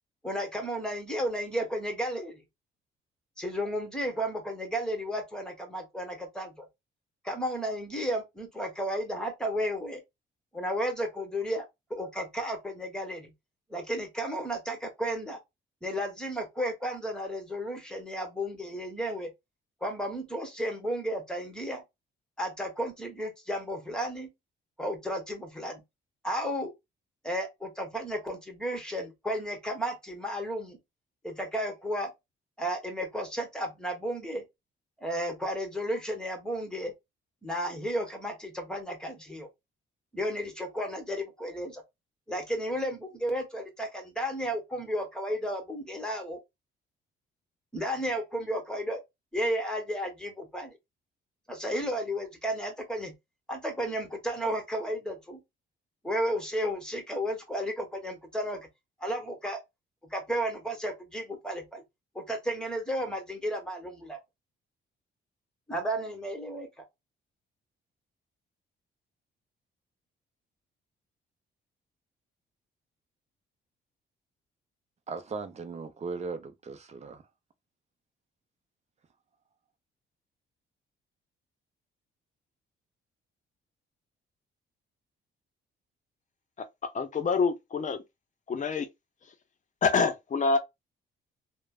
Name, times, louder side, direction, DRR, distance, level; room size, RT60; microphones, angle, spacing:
voice 1, 0.2-2.4 3.4-6.7 7.2-10.0 10.5-11.6 11.9-13.3 13.7-15.4 15.8-19.3 19.8-21.8 22.4-24.3 24.8-25.8 26.2-26.7 27.2-30.8 31.2-32.1 32.6-34.4 35.0-36.9 37.4-39.5 40.1-41.8 42.3-46.4 47.7-49.0 49.3-50.8 51.5-53.1 53.5-55.4 56.0-58.7 59.0-59.6 60.0-61.8 62.1-64.2 65.7-66.8, equal, 5° left, 1.2 m, -33 dB
voice 2, 75.1-77.2, right 4 dB, 35° right, 0.7 m, -38 dB
voice 3, 86.9-88.0 88.5-88.9 89.8-90.6, left 4 dB, 40° left, 0.7 m, -26 dB
3.1 x 2.2 x 2.3 m
cardioid pair, 90°, 20 cm